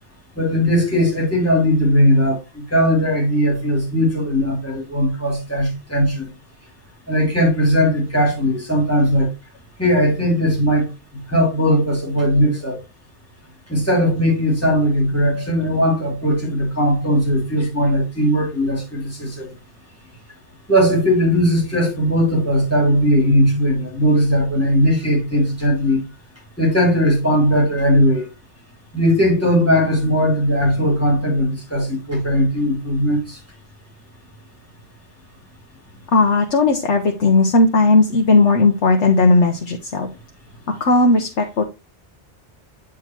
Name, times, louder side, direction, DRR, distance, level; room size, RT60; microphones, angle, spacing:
voice 1, 0.4-6.3 7.1-9.3 9.8-10.9 11.3-12.8 13.7-19.5 20.7-26.0 26.6-28.3 28.9-33.4, equal, 10° left, 2.8 m, -18 dB
voice 2, 36.1-40.1 40.8-41.6, left 3 dB, 90° left, 1.3 m, -16 dB
8.5 x 3.7 x 4.4 m
omnidirectional pair, 1.2 m